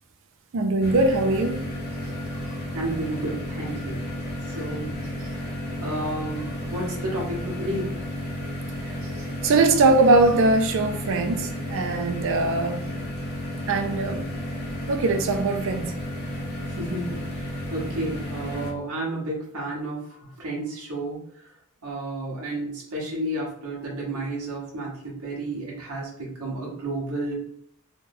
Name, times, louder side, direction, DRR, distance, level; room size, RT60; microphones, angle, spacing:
voice 1, 0.5-1.6 9.4-12.8 13.7-14.2 14.9-15.9, right 2 dB, 60° right, 6 dB, 0.4 m, -21 dB
sound 1, 0.8-18.7, equal, 45° left, 1.0 m, -32 dB
voice 2, 2.3-4.0 4.5-5.0 5.3-7.9 16.7-21.2 21.8-27.3, right 1 dB, 85° right, -4 dB, 1.0 m, -32 dB
3.1 x 2.2 x 3.4 m, 0.68 s
head